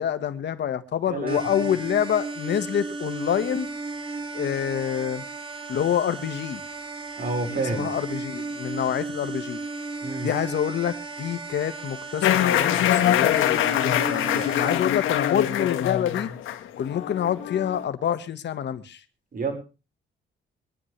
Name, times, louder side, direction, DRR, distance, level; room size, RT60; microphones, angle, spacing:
voice 1, 0.0-3.7 4.3-5.2 5.7-6.6 7.5-9.6 10.2-16.3 16.8-19.0, left 9 dB, 60° left, 1.6 m, -27 dB
voice 2, 1.1-1.4 7.2-7.9 10.0-10.3 19.3-19.5, right 3 dB, 45° right, 5.3 m, -28 dB
sound 1, 1.3-14.8, right 3 dB, 25° right, 2.7 m, -35 dB
sound 2, 12.2-17.8, left 11 dB, 85° left, 1.6 m, -24 dB
25.5 x 9.7 x 3.4 m
cardioid pair, 90°, 20 cm